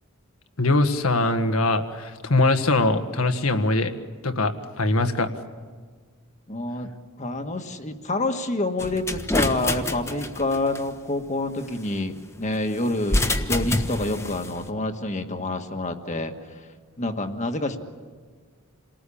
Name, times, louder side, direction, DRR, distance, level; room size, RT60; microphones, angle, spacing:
voice 1, 0.6-3.9 4.2-5.3, left 2 dB, 75° left, 8 dB, 1.7 m, -22 dB
voice 2, 6.5-6.9 7.2-16.7 17.0-17.8, left 2 dB, 35° left, 6 dB, 1.6 m, -27 dB
sound 1, 8.8-10.8 13.0-14.5, left 1 dB, 10° left, 1.2 m, -26 dB
28.5 x 19.0 x 8.6 m, 1.5 s
head